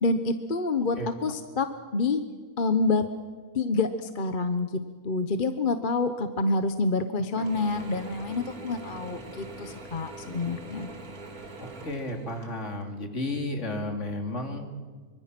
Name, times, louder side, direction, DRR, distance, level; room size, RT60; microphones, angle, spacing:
voice 1, 0.0-1.7 1.9-2.2 2.6-3.0 3.5-4.7 5.0-10.9, left 3 dB, 40° left, 9 dB, 1.0 m, -27 dB
Mechanisms / Drill, 7.4-12.9, right 2 dB, 90° right, 2.5 m, -43 dB
voice 2, 11.6-14.7, left 1 dB, 55° left, 4 dB, 2.9 m, -33 dB
25.0 x 24.5 x 6.0 m, 1.5 s
omnidirectional pair, 1.5 m